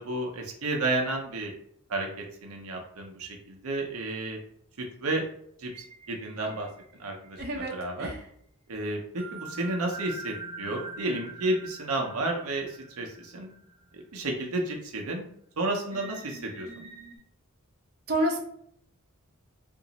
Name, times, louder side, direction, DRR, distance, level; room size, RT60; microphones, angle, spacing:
voice 1, 0.0-1.5 1.9-4.4 4.8-5.2 5.6-6.7 7.0-7.4 7.7-8.1 8.7-13.5 13.9-15.3 15.6-16.7, right 2 dB, 85° right, 1 dB, 0.7 m, -32 dB
sound 1, 5.7-7.7 9.2-14.0 14.5-14.6 15.9-17.2, right 3 dB, 20° right, 1.4 m, -44 dB
voice 2, 7.4-7.7 8.0-8.2 18.1-18.4, right 1 dB, 45° right, 0 dB, 0.8 m, -28 dB
2.9 x 2.6 x 3.9 m, 0.69 s
head